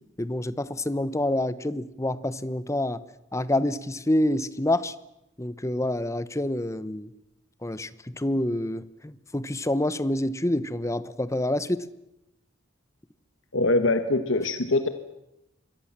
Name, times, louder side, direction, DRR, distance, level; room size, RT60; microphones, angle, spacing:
voice 1, 0.2-3.0 3.3-4.9 5.4-7.1 7.6-11.9, left 1 dB, 15° left, 16 dB, 1.0 m, -27 dB
voice 2, 13.5-14.9, left 2 dB, 85° left, 9 dB, 1.6 m, -23 dB
27.0 x 22.5 x 7.5 m, 0.89 s
head